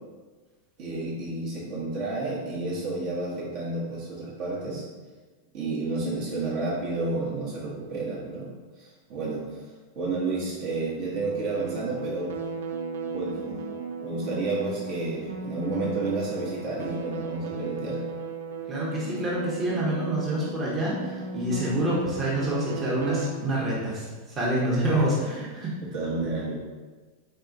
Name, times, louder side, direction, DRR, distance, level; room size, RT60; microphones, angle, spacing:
voice 1, 0.8-4.9 5.5-8.5 8.8-9.4 9.9-12.3 13.1-13.6 14.0-18.0 24.8-24.9 25.9-26.6, right 3 dB, 45° right, -6 dB, 1.1 m, -31 dB
sound 1, 11.2-23.3, right 4 dB, 60° right, 0.4 m, -36 dB
voice 2, 18.7-25.7, right 1 dB, 20° right, -6 dB, 1.0 m, -27 dB
4.1 x 3.3 x 2.6 m, 1.3 s
figure-of-eight pair, 90°, 0 cm